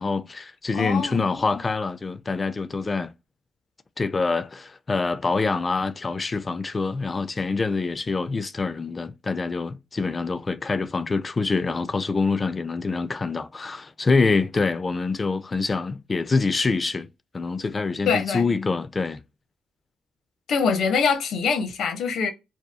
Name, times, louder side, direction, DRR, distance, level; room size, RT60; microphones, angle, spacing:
voice 1, 0.0-3.1 4.0-17.1 17.3-19.2, left 4 dB, 30° left, 0.3 m, -25 dB
voice 2, 0.7-1.2 18.0-18.4 20.5-22.3, left 5 dB, 70° left, 0.6 m, -24 dB
2.8 x 2.3 x 2.2 m
cardioid pair, 90°, 0 cm